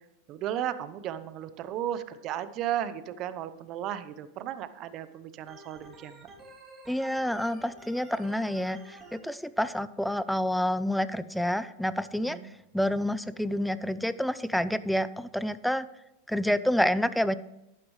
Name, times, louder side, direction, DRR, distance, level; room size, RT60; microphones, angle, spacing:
voice 1, 0.3-6.3 12.2-12.5, right 11 dB, 40° right, 13 dB, 0.8 m, -35 dB
Organ, 5.5-9.2, right 2 dB, 20° right, 2.8 m, -50 dB
voice 2, 6.9-12.4 12.7-15.9 16.3-17.4, equal, ahead, 15 dB, 0.5 m, -28 dB
11.5 x 10.0 x 3.2 m, 0.88 s
supercardioid pair, 130°, 0 cm